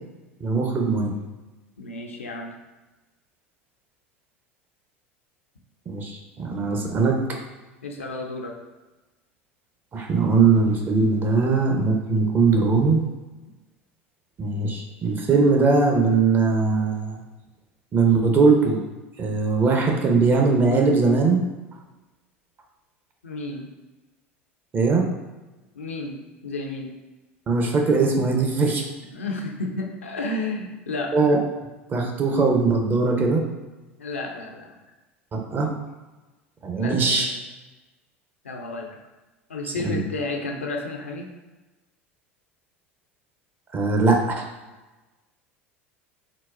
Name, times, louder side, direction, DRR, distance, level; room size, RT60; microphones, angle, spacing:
voice 1, 0.4-1.2 5.9-7.2 9.9-13.0 14.4-17.2 17.9-18.8 19.2-21.4 24.7-25.1 27.5-28.8 31.1-31.4 31.9-33.4 35.3-35.7 36.6-37.3 39.6-40.0 43.7-44.5, right 4 dB, 30° right, 1 dB, 0.6 m, -20 dB
voice 2, 1.8-2.5 7.8-8.6 23.2-23.7 25.7-26.9 29.1-31.2 34.0-34.8 36.7-37.3 38.4-39.0 39.5-41.3, left 2 dB, 80° left, 2 dB, 0.4 m, -32 dB
3.8 x 2.1 x 2.4 m, 1.1 s
figure-of-eight pair, 75°, 7 cm